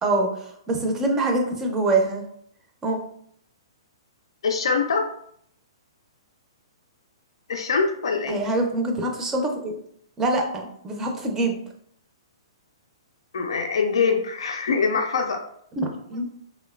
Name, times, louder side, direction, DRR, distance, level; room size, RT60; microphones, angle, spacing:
voice 1, 0.0-2.2 2.8-3.0 8.3-9.7 10.2-11.6 15.8-16.3, right 2 dB, 15° right, 2 dB, 0.5 m, -24 dB
voice 2, 4.4-5.1 7.5-8.4 13.3-15.4, left 5 dB, 80° left, 3 dB, 0.3 m, -23 dB
3.0 x 2.1 x 2.2 m, 0.67 s
hypercardioid pair, 135°, 3 cm